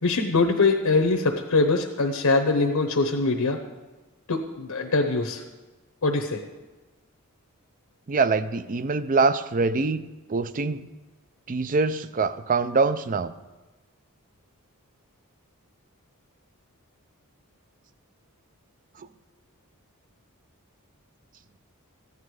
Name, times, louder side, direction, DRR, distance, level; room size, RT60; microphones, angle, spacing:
voice 1, 0.0-3.6 4.3-5.4 6.0-6.4, left 3 dB, 75° left, 4 dB, 0.9 m, -23 dB
voice 2, 8.1-10.0 10.3-10.8 11.5-13.3 19.0-19.1, right 4 dB, 35° right, 14 dB, 0.5 m, -24 dB
14.5 x 9.7 x 4.8 m, 1.2 s
head